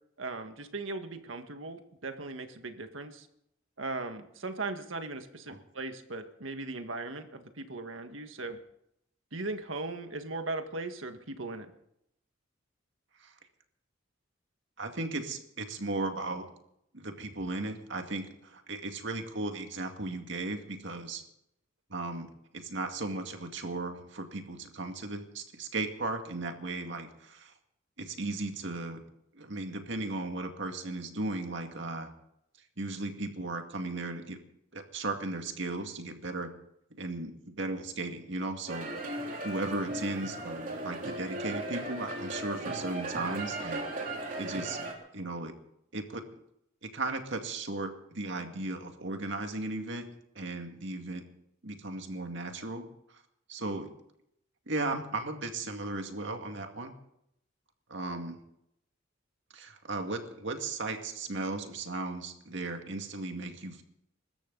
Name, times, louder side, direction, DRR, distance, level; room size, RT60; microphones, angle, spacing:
voice 1, 0.2-3.3 3.8-8.6 9.3-11.7, right 3 dB, 80° right, 7 dB, 1.7 m, -38 dB
voice 2, 14.8-16.5 16.9-21.2 21.9-22.3 22.5-27.5 28.0-29.0 29.3-32.1 32.8-34.4 34.7-36.6 37.0-38.9 39.4-43.9 44.4-44.8 45.1-45.5 45.9-46.2 46.8-50.1 50.4-51.3 51.6-52.9 53.5-53.9 54.7-56.9 57.9-58.4 59.5-63.8, right 2 dB, 65° right, 5 dB, 2.2 m, -36 dB
sound 1, 38.7-44.9, right 2 dB, 45° right, 3.7 m, -37 dB
24.0 x 13.5 x 4.0 m, 0.77 s
head